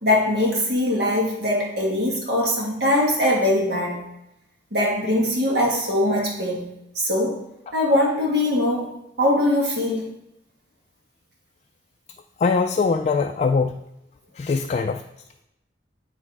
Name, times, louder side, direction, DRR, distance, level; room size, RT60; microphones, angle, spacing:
voice 1, 0.0-4.0 4.7-6.7 7.0-7.4 7.7-10.1, left 1 dB, 65° right, -2 dB, 1.7 m, -22 dB
voice 2, 12.4-13.7 14.4-15.0, left 4 dB, 40° left, 5 dB, 0.3 m, -21 dB
9.3 x 3.3 x 4.8 m, 0.87 s
head